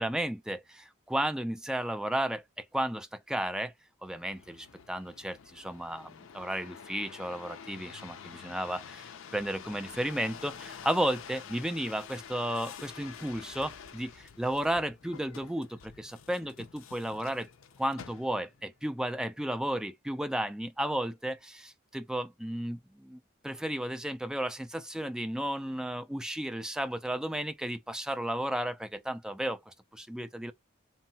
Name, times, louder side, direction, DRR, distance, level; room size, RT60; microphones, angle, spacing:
voice 1, 0.0-3.7 4.0-17.5 17.8-30.5, right 1 dB, 5° right, 0.3 m, -33 dB
sound 1, 4.1-18.6 19.2-19.7, left 7 dB, 70° left, 0.4 m, -48 dB
3.1 x 2.0 x 2.7 m
head